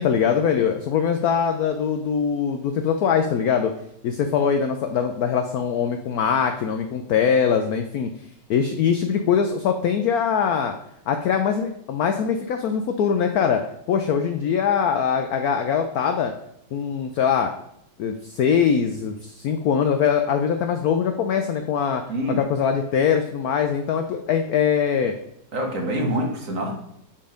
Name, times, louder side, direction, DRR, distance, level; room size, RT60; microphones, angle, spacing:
voice 1, 0.0-3.7 4.0-8.1 8.5-10.7 11.1-13.6 13.9-16.3 16.7-17.5 18.0-22.0 22.4-25.1, left 7 dB, 80° left, 6 dB, 0.8 m, -22 dB
voice 2, 22.1-22.4 25.5-26.7, equal, 45° right, 1 dB, 1.3 m, -25 dB
7.5 x 4.3 x 5.1 m, 0.75 s
omnidirectional pair, 2.2 m